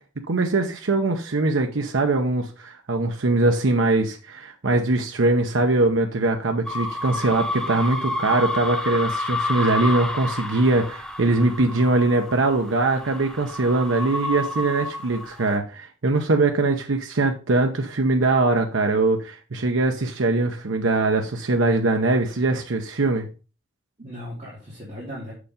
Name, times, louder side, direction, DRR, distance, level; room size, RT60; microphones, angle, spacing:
voice 1, 0.3-23.3, right 2 dB, 90° right, 4 dB, 0.8 m, -22 dB
sound 1, 6.7-15.5, left 2 dB, 5° left, 0.8 m, -30 dB
voice 2, 11.2-11.7 24.0-25.3, equal, 35° right, -6 dB, 2.6 m, -38 dB
6.7 x 5.0 x 5.0 m, 0.34 s
head